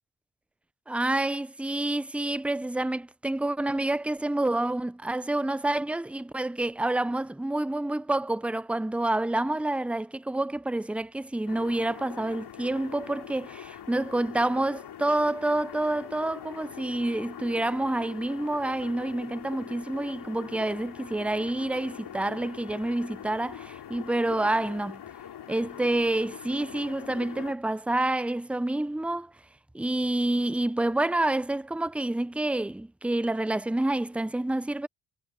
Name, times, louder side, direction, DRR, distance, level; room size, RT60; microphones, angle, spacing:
voice 1, 0.9-25.0 25.5-29.3 29.7-34.9, right 2 dB, 5° right, 0.7 m, -28 dB
sound 1, 11.5-27.5, left 10 dB, 80° left, 5.7 m, -43 dB
supercardioid pair, 50°, 38 cm